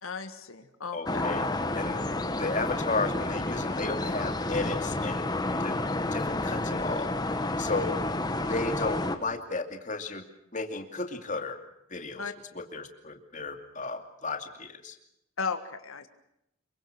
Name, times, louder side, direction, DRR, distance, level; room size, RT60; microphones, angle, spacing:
voice 1, 0.0-1.3 12.2-12.3 15.4-16.1, left 5 dB, 85° left, 8 dB, 1.7 m, -35 dB
voice 2, 0.9-1.4 1.7-2.0 2.4-5.3 5.6-5.8 6.1-7.2 7.6-8.0 8.5-10.2 10.5-11.6 11.9-12.2 12.5-15.0, left 3 dB, 35° left, 6 dB, 2.5 m, -33 dB
sound 1, 1.1-9.2, left 2 dB, 20° left, 1.5 m, -30 dB
27.0 x 23.5 x 6.2 m, 0.81 s
head